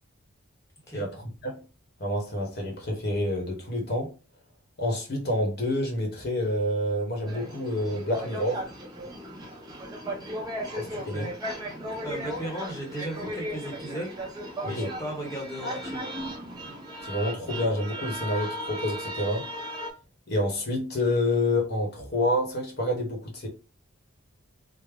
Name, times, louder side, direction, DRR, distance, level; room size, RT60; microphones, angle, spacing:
voice 1, 0.9-1.6 2.0-4.1 4.8-8.6 10.7-11.3 14.8-14.9 17.0-19.5 20.3-23.5, left 1 dB, 45° left, 0.9 m, -28 dB
sound 1, 7.3-19.9, equal, 20° right, 0.6 m, -36 dB
voice 2, 10.9-11.3 12.0-14.1 14.6-16.0, right 1 dB, 15° left, 0.9 m, -36 dB
3.4 x 2.0 x 3.6 m
head